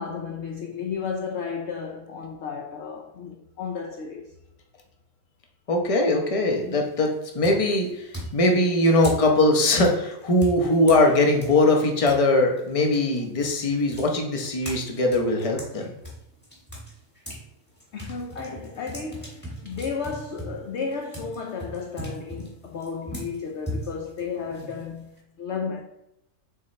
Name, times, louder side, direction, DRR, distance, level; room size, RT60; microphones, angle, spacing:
voice 1, 0.0-4.3 6.7-6.9 17.9-25.1 25.4-25.8, left 5 dB, 65° left, 0.7 m, -33 dB
voice 2, 5.7-15.9, left 2 dB, 30° left, 0.7 m, -21 dB
sound 1, 6.5-6.9 7.4-12.2 12.6-17.4 17.8-25.2, equal, 5° left, 1.5 m, -39 dB
7.2 x 4.2 x 3.2 m
omnidirectional pair, 1.7 m